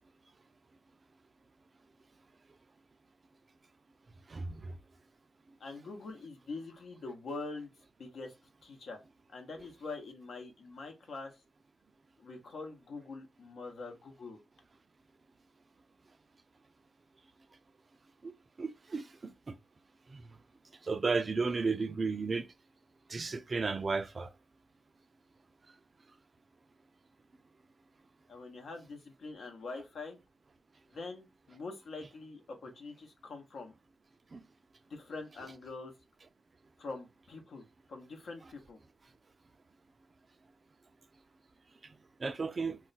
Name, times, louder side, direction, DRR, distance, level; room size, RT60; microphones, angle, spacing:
voice 1, 4.3-4.7 18.2-18.3 18.6-19.5 20.1-20.2 20.9-22.5 23.1-24.3 34.3-34.4 42.2-42.8, right 4 dB, 45° right, 0.4 m, -33 dB
voice 2, 5.6-7.7 8.0-8.3 8.6-9.0 9.3-11.3 12.2-14.4 28.3-30.2 30.9-33.7 34.9-35.9 36.8-38.8, left 3 dB, 75° left, 0.8 m, -44 dB
2.3 x 2.2 x 3.9 m
cardioid pair, 60°, 0 cm